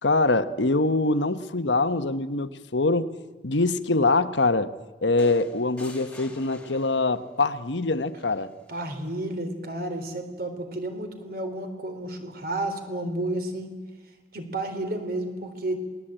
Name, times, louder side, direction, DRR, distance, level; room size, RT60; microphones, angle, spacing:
voice 1, 0.0-3.1 3.4-4.7 5.0-8.5, left 3 dB, 90° left, 11 dB, 1.2 m, -24 dB
sound 1, 5.2-7.3 8.7-8.9, left 1 dB, 5° left, 2.5 m, -48 dB
voice 2, 8.7-13.8 14.3-15.8, right 1 dB, 55° right, 7 dB, 3.8 m, -31 dB
27.5 x 20.0 x 9.0 m, 1.3 s
head